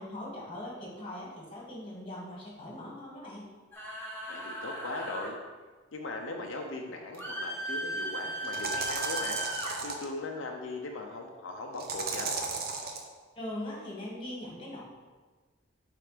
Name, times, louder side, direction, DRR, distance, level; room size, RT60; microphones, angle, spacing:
voice 1, 0.0-3.5 13.3-14.8, left 1 dB, 30° left, -4 dB, 1.8 m, -40 dB
sound 1, 3.7-5.4 7.2-9.7, right 1 dB, 10° left, 1.2 m, -36 dB
voice 2, 4.3-5.4 5.9-9.4 9.8-12.3, left 2 dB, 80° left, 2 dB, 0.6 m, -39 dB
sound 2, 7.1-7.2 8.4-10.1 11.8-13.0, right 4 dB, 50° right, 0.8 m, -35 dB
6.7 x 3.4 x 5.0 m, 1.4 s
head